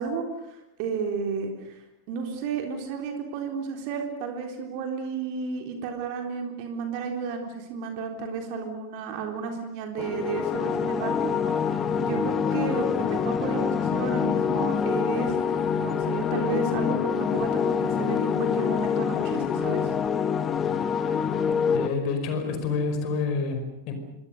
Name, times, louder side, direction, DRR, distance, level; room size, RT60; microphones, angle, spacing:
voice 1, 0.0-19.9, right 5 dB, 45° right, 4 dB, 3.7 m, -32 dB
sound 1, 10.0-21.9, left 7 dB, 25° left, 1.1 m, -26 dB
voice 2, 21.5-23.9, left 4 dB, 40° left, 7 dB, 5.2 m, -28 dB
26.5 x 23.0 x 6.6 m, 0.90 s
figure-of-eight pair, 90°, 0 cm